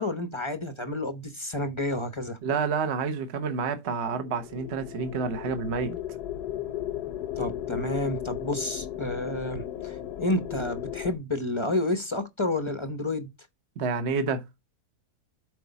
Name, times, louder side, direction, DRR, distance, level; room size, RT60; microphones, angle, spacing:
voice 1, 0.0-2.4 7.4-13.3, left 1 dB, 25° left, 0.7 m, -30 dB
voice 2, 2.4-5.9 13.8-14.4, right 5 dB, 45° right, 1.1 m, -29 dB
sound 1, 4.1-11.2, left 11 dB, 75° left, 1.4 m, -35 dB
8.3 x 4.7 x 4.0 m
omnidirectional pair, 1.7 m